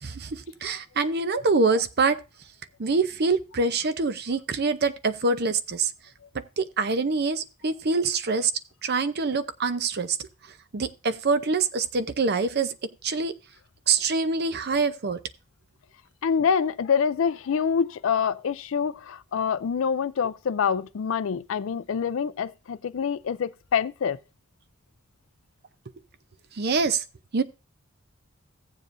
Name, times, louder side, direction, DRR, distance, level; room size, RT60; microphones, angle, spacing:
voice 1, 0.0-2.2 2.8-5.9 6.3-8.5 8.8-10.2 10.7-12.7 13.0-13.3 13.9-15.2 26.5-27.0 27.3-27.4, right 4 dB, 50° right, 0.6 m, -25 dB
voice 2, 16.2-24.2, left 6 dB, 65° left, 0.4 m, -26 dB
16.0 x 7.3 x 2.6 m
head